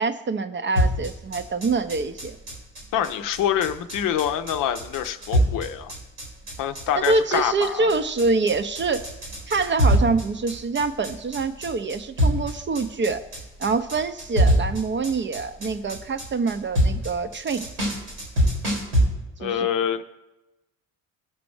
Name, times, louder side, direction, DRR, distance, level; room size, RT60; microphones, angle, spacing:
voice 1, 0.0-2.4 7.0-9.0 9.5-13.2 13.6-17.6 19.4-19.7, right 4 dB, 30° right, 10 dB, 0.6 m, -25 dB
sound 1, 0.8-19.0, equal, 90° right, 2.6 m, -24 dB
voice 2, 2.9-5.9 6.6-7.9 19.4-20.0, left 9 dB, 50° left, 9 dB, 0.7 m, -25 dB
16.5 x 5.9 x 3.2 m, 1.0 s
figure-of-eight pair, 50°, 41 cm